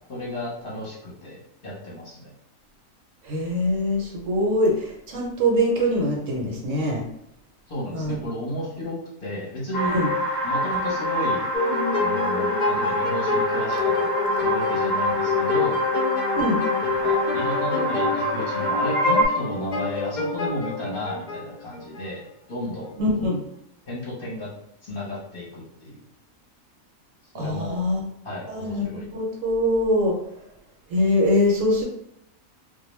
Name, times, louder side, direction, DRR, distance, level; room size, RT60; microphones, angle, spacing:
voice 1, 0.1-2.3 7.7-9.9 10.4-11.5 12.0-15.9 17.0-22.2 22.5-23.0 23.9-24.5 24.8-26.0 27.3-27.8 28.2-29.1, left 1 dB, 45° left, -7 dB, 0.9 m, -33 dB
voice 2, 3.2-7.0 7.9-8.2 9.9-10.1 16.3-16.6 23.0-23.4 27.3-28.0 28.5-30.2 30.9-31.8, left 1 dB, 70° right, -1 dB, 0.9 m, -23 dB
sound 1, 9.7-19.3, equal, 20° left, 0.5 m, -26 dB
sound 2, 11.5-22.0, left 4 dB, 75° left, 0.4 m, -27 dB
2.3 x 2.1 x 3.0 m, 0.77 s
omnidirectional pair, 1.5 m